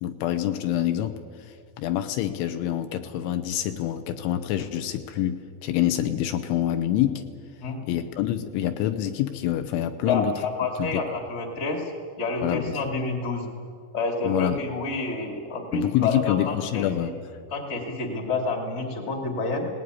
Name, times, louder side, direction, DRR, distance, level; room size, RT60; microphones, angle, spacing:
voice 1, 0.0-1.2 1.8-7.2 7.9-10.3 10.8-10.9 12.4-12.8 14.2-14.6 15.7-17.1, left 12 dB, 80° left, 9 dB, 3.1 m, -26 dB
voice 2, 10.0-11.9 12.2-13.5 13.9-17.1 17.5-19.7, left 3 dB, 30° left, 3 dB, 1.2 m, -29 dB
19.5 x 19.0 x 9.7 m, 2.3 s
omnidirectional pair, 6.0 m